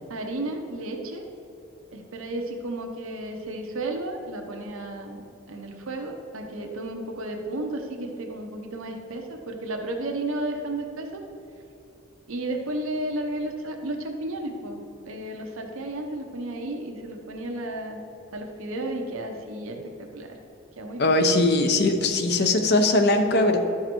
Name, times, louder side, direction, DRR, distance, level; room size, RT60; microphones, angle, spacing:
voice 1, 0.1-1.2 1.9-5.2 5.5-11.2 12.3-18.0 18.3-19.8 20.1-20.3 20.8-21.2, right 1 dB, 85° right, 2 dB, 0.9 m, -33 dB
voice 2, 21.0-23.6, left 2 dB, 55° left, 6 dB, 0.7 m, -20 dB
12.0 x 4.8 x 4.4 m, 2.8 s
head